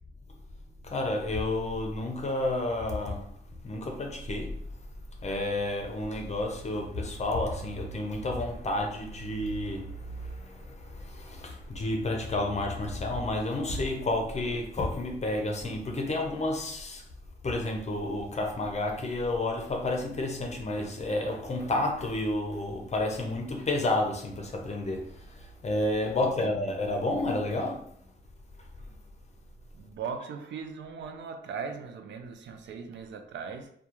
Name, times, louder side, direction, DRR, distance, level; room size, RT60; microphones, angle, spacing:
voice 1, 0.8-3.3 3.6-4.6 5.2-17.0 17.4-27.9, left 2 dB, 35° left, 0.6 m, -30 dB
voice 2, 26.4-26.8 29.7-33.7, right 6 dB, 80° right, 0.4 m, -39 dB
2.3 x 2.2 x 2.9 m
cardioid pair, 85°, 19 cm